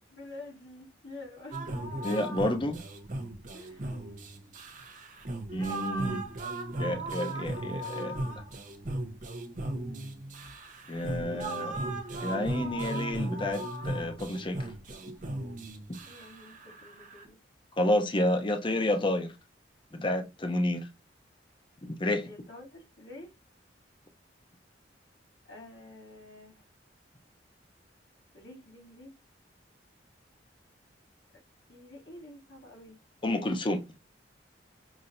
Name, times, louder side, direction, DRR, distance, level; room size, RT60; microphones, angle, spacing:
voice 1, 0.1-2.1 3.5-4.1 9.5-9.6 16.0-17.4 22.2-23.3 25.5-26.6 28.3-29.1 31.7-33.0, left 2 dB, 80° left, 2.7 m, -48 dB
sound 1, 1.5-17.3, right 1 dB, 45° right, 0.8 m, -37 dB
voice 2, 2.0-2.8 5.5-6.2 6.8-8.1 10.9-11.8 12.2-14.6 17.8-19.3 20.0-20.9 21.8-22.3 33.2-33.8, left 1 dB, 30° left, 0.7 m, -30 dB
5.9 x 2.6 x 2.6 m
head